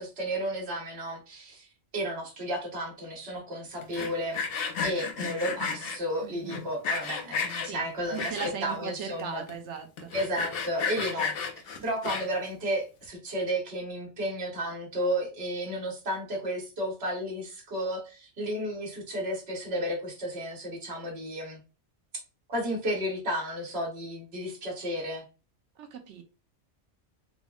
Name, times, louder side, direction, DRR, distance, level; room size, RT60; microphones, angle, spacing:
voice 1, 0.0-1.7 1.9-4.4 4.8-9.4 10.1-11.3 11.8-21.6 22.5-25.2, equal, 60° right, 1.3 m, -32 dB
Sawing, 3.8-6.0 6.5-7.7 8.2-8.8 9.2-9.3 9.5-9.6 10.0-12.5, left 5 dB, 60° left, 0.7 m, -32 dB
voice 2, 6.2-6.7 7.6-10.1 11.7-11.9 25.8-26.2, right 6 dB, 80° right, 0.9 m, -38 dB
3.5 x 2.0 x 2.3 m
omnidirectional pair, 1.2 m